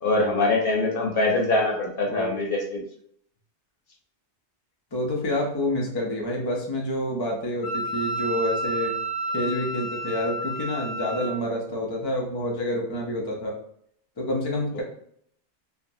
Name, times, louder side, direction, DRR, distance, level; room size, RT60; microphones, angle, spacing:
voice 1, 0.0-2.8, left 2 dB, 60° left, 0 dB, 0.8 m, -23 dB
voice 2, 4.9-8.9 9.3-13.6 14.2-14.8, left 1 dB, 35° left, -1 dB, 0.4 m, -28 dB
Wind instrument woodwind instrument, 7.6-11.4, right 1 dB, 85° left, 1.2 m, -30 dB
3.3 x 2.0 x 2.6 m, 0.67 s
omnidirectional pair, 1.1 m